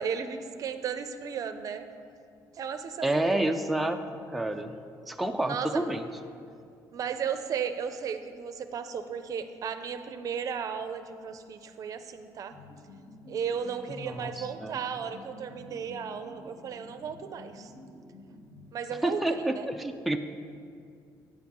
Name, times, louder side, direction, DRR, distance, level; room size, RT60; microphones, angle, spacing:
voice 1, 0.0-1.9 2.5-3.5 5.4-5.9 6.9-12.6 13.3-17.7 18.7-19.7, right 7 dB, 50° right, 9 dB, 0.5 m, -35 dB
voice 2, 3.0-4.0 4.3-4.8 5.1-6.0 14.0-14.8 19.0-20.2, right 1 dB, ahead, 5 dB, 0.4 m, -29 dB
sound 1, 12.5-19.2, left 1 dB, 70° left, 2.2 m, -50 dB
9.2 x 6.4 x 5.2 m, 2.4 s
cardioid pair, 110°, 8 cm